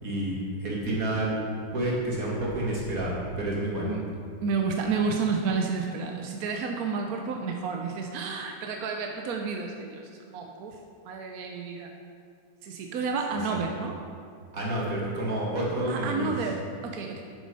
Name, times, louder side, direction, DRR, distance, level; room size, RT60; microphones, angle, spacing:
voice 1, 0.0-1.3 1.7-3.9 13.5-13.6 14.5-16.3, right 1 dB, 40° right, -4 dB, 2.5 m, -29 dB
voice 2, 4.4-10.8 11.0-11.9 12.6-14.0 15.9-17.2, right 5 dB, 65° right, 2 dB, 0.9 m, -31 dB
9.5 x 7.6 x 5.4 m, 2.2 s
omnidirectional pair, 2.3 m